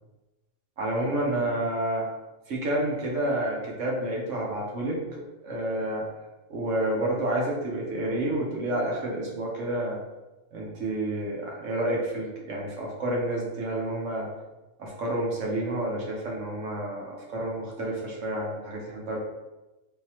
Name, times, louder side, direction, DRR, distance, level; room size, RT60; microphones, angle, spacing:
voice 1, 0.8-2.1 2.5-6.1 6.5-10.0 10.5-14.3 14.8-19.2, right 1 dB, 80° right, -2 dB, 1.3 m, -29 dB
3.7 x 2.7 x 2.9 m, 1.1 s
omnidirectional pair, 1.3 m